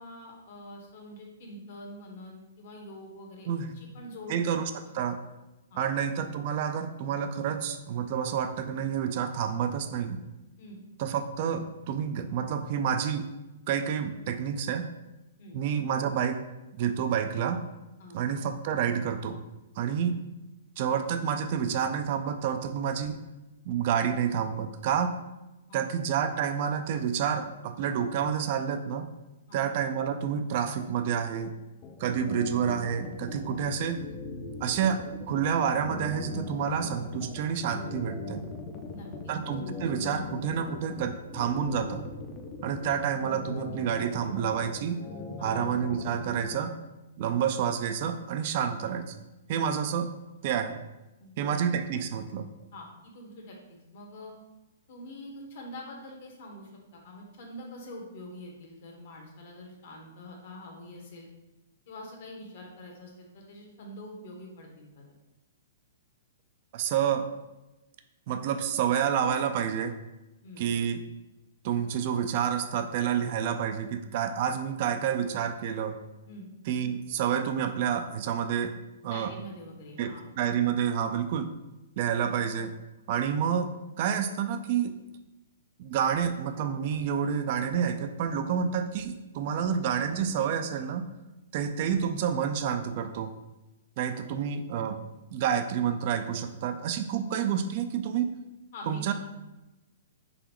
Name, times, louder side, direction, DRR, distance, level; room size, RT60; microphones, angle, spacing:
voice 1, 0.0-3.5 3.7-4.4 5.7-5.9 10.6-10.8 15.4-15.6 18.0-18.2 25.7-25.8 29.5-29.6 38.9-39.4 45.4-45.6 51.2-51.6 52.7-54.3 54.9-61.3 61.9-65.2 70.4-70.6 76.3-76.5 79.0-80.2 94.2-94.4 98.7-99.1, left 1 dB, 60° left, 0 dB, 1.1 m, -45 dB
voice 2, 4.3-4.6 4.9-5.2 5.7-10.2 11.0-13.3 13.7-14.9 15.5-16.4 16.8-17.6 18.1-19.4 19.8-20.2 20.8-23.2 23.7-25.1 25.7-29.1 29.5-31.5 32.0-34.0 34.6-38.4 39.3-42.0 42.6-45.0 45.4-46.7 47.2-49.1 49.5-50.1 50.4-50.8 51.4-52.5 66.7-67.3 68.3-70.0 70.6-71.0 71.6-76.0 76.7-78.7 79.0-79.3 80.0-81.5 82.0-82.8 83.1-83.7 84.0-84.9 85.8-91.1 91.5-93.3 94.0-95.0 95.3-98.3 98.9-99.1, right 8 dB, 45° right, 8 dB, 0.3 m, -29 dB
sound 1, 31.8-46.6, left 4 dB, 25° left, 0.5 m, -40 dB
3.9 x 3.1 x 3.0 m, 1.0 s
hypercardioid pair, 140°, 0 cm